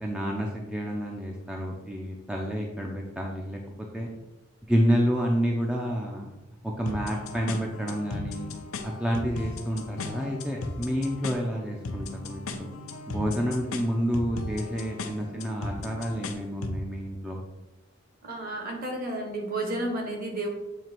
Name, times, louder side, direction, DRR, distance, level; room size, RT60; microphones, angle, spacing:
voice 1, 0.0-3.6 3.9-4.1 4.7-6.3 6.6-8.5 8.8-12.7 13.1-17.4, equal, 5° right, -1 dB, 0.5 m, -29 dB
sound 1, 6.9-16.8, left 2 dB, 85° left, 0.7 m, -37 dB
voice 2, 18.2-20.5, right 1 dB, 45° right, 2 dB, 1.3 m, -32 dB
7.6 x 2.9 x 4.4 m, 1.0 s
head